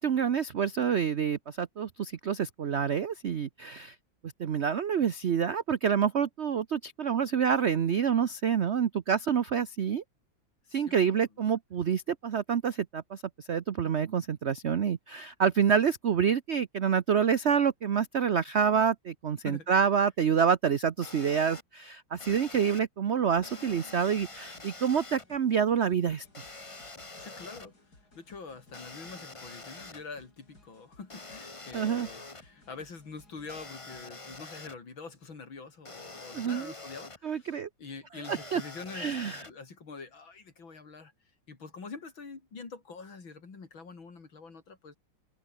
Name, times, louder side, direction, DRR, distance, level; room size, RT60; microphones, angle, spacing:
voice 1, 0.0-3.9 4.4-10.0 10.7-13.2 13.5-26.2 31.7-32.1 36.3-36.7 37.2-37.7 38.3-38.6 38.9-39.4, right 7 dB, 50° right, 0.8 m, -27 dB
voice 2, 10.7-11.2 19.4-19.7 27.2-27.7 28.1-41.1 41.5-45.0, left 4 dB, 80° left, 4.3 m, -45 dB
sound 1, 21.0-21.6 22.2-22.8 23.4-25.2 26.3-27.7 28.7-30.0 31.1-32.4 33.5-34.8 35.9-37.2 38.2-39.5, left 3 dB, 15° left, 1.5 m, -46 dB
sound 2, 23.9-34.4, left 2 dB, 50° left, 7.2 m, -60 dB
omnidirectional pair, 2.1 m